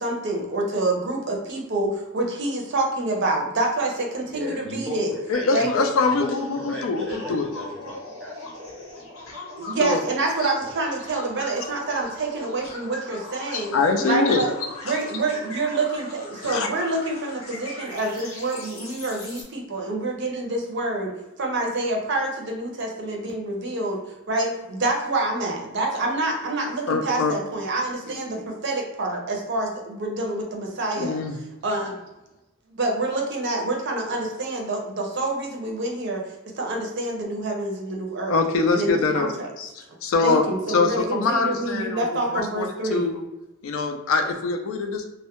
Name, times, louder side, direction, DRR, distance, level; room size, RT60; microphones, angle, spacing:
voice 1, 0.0-5.1 5.5-5.7 9.6-14.5 14.8-21.1 21.4-24.0 24.3-31.2 31.6-31.9 32.8-36.2 36.6-38.4 38.7-39.5 40.2-43.1, right 2 dB, 55° right, 1 dB, 0.5 m, -27 dB
voice 2, 4.2-5.9 6.2-9.1, left 1 dB, 5° left, -5 dB, 0.6 m, -35 dB
voice 3, 5.3-7.5 9.8-10.0 13.5-14.5 14.8-15.0 16.4-16.7 26.9-27.4 31.0-31.4 38.3-39.7 40.0-43.2 43.6-45.1, left 4 dB, 65° left, 4 dB, 0.3 m, -24 dB
sound 1, 5.7-19.4, left 2 dB, 80° left, 0.8 m, -39 dB
2.2 x 2.1 x 2.8 m, 1.0 s
head